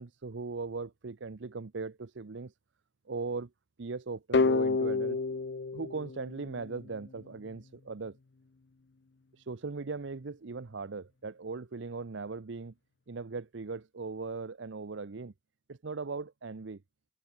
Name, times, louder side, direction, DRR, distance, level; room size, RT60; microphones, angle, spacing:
voice 1, 0.0-2.5 3.1-3.5 3.8-5.2 5.7-8.2 9.5-12.7 13.1-15.3 15.7-16.8, right 4 dB, 75° right, 0.7 m, -39 dB
sound 1, 4.3-7.1, left 4 dB, 60° left, 0.6 m, -29 dB
head